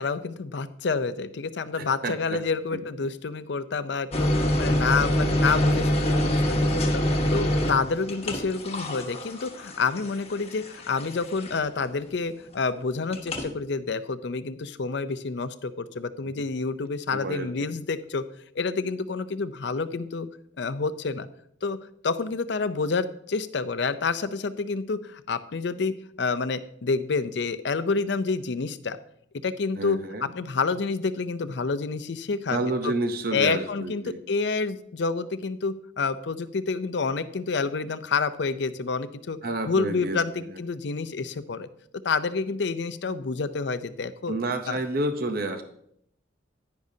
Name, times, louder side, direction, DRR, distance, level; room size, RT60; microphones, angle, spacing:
voice 1, 0.0-18.2 18.6-20.3 20.6-21.3 21.6-21.8 22.0-29.0 29.4-30.0 30.3-32.9 33.3-39.4 39.7-41.7 42.0-44.3 44.7-44.8, left 4 dB, 65° left, 13 dB, 0.5 m, -28 dB
voice 2, 1.8-2.4 2.7-2.8 17.1-17.7 29.8-30.4 32.5-34.2 39.4-40.2 40.5-40.6 44.3-45.6, right 2 dB, 50° right, 7 dB, 0.7 m, -30 dB
sound 1, 4.1-11.8 13.1-13.5, left 1 dB, 35° left, 1.2 m, -25 dB
10.5 x 10.0 x 2.7 m, 0.70 s
head